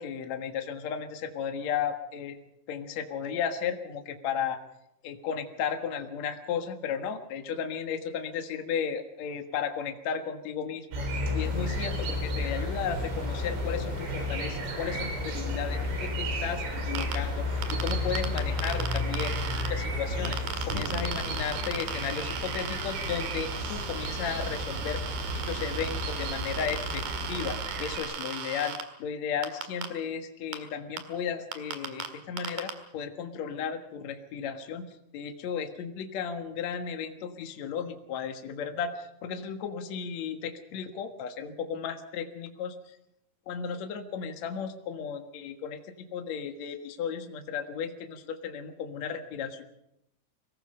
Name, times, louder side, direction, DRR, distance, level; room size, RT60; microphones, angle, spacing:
voice 1, 0.0-2.4 2.7-4.6 5.0-11.0 11.3-19.4 19.7-20.4 20.7-25.0 25.5-28.7 29.0-43.0 43.5-49.6, left 7 dB, 70° left, 6 dB, 1.6 m, -34 dB
sound 1, 10.9-28.0, left 1 dB, 85° right, 6.5 m, -33 dB
sound 2, 11.4-27.6, left 3 dB, 45° left, 1.4 m, -42 dB
sound 3, 17.0-17.2 17.6-19.7 20.3-28.8 29.4-29.9 30.5-30.6 31.0-31.1 31.5-32.1 32.4-32.7, right 7 dB, 55° right, 3.1 m, -37 dB
24.5 x 19.5 x 5.6 m, 0.81 s
omnidirectional pair, 5.7 m